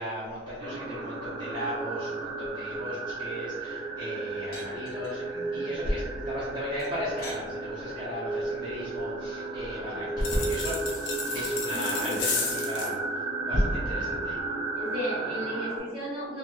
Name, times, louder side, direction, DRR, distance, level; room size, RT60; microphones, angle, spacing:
voice 1, 0.0-10.8 11.3-12.9 13.4-14.4, equal, 25° right, -12 dB, 0.7 m, -34 dB
sound 1, 0.6-15.8, right 3 dB, 85° right, 0.6 m, -34 dB
sound 2, 4.5-5.2 6.8-7.5 8.9-9.3, equal, 50° left, 1.3 m, -43 dB
voice 2, 5.3-5.8 11.7-12.2 13.6-13.7 14.8-16.4, equal, 15° left, -15 dB, 1.0 m, -35 dB
sound 3, 10.2-12.9, left 5 dB, 80° left, 0.5 m, -33 dB
3.0 x 2.8 x 2.2 m, 1.4 s
head